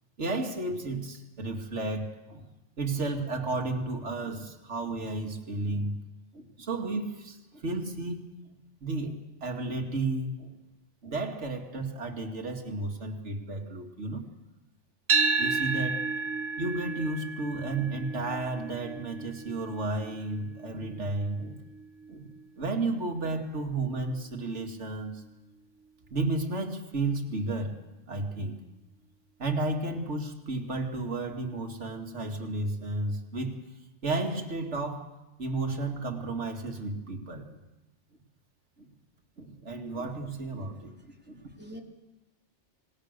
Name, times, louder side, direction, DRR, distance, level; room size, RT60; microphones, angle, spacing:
voice 1, 0.2-2.4 2.8-6.0 6.3-8.3 8.8-10.5 11.0-14.2 15.4-16.0 16.6-21.6 22.1-22.3 22.6-25.2 26.1-27.7 28.1-28.6 29.4-33.6 34.0-35.1 35.4-37.5 38.8-38.9 39.4-40.9 41.3-41.5, right 2 dB, 70° right, 2 dB, 2.6 m, -32 dB
sound 1, 15.1-23.3, right 4 dB, 85° right, 1.6 m, -32 dB
voice 2, 41.0-41.8, equal, 10° right, 1 dB, 3.1 m, -48 dB
27.0 x 19.5 x 6.7 m, 1.0 s
omnidirectional pair, 1.2 m